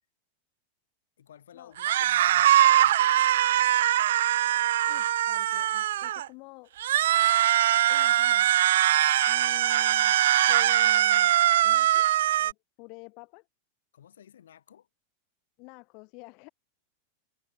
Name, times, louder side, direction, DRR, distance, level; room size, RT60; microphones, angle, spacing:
voice 1, 1.2-2.7 13.9-14.9, left 9 dB, 65° left, 6.2 m, -53 dB
sound 1, 1.8-6.3 6.8-12.5, right 12 dB, 60° right, 0.4 m, -22 dB
voice 2, 4.9-6.8 7.9-8.6 9.3-10.2 10.5-11.3 11.6-12.1 12.4-13.5 15.6-16.5, left 31 dB, 45° left, 1.8 m, -48 dB
figure-of-eight pair, 90°, 0 cm